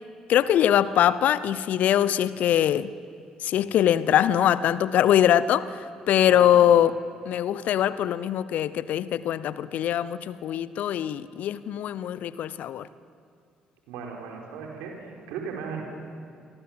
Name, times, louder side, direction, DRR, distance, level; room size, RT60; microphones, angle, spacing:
voice 1, 0.3-2.9 3.4-5.8 6.1-6.9 7.3-12.9, left 10 dB, 55° left, 17 dB, 0.8 m, -22 dB
voice 2, 6.3-6.8 13.9-15.8, right 6 dB, 65° right, 1 dB, 5.0 m, -37 dB
28.5 x 23.0 x 7.7 m, 2.3 s
figure-of-eight pair, 45°, 3 cm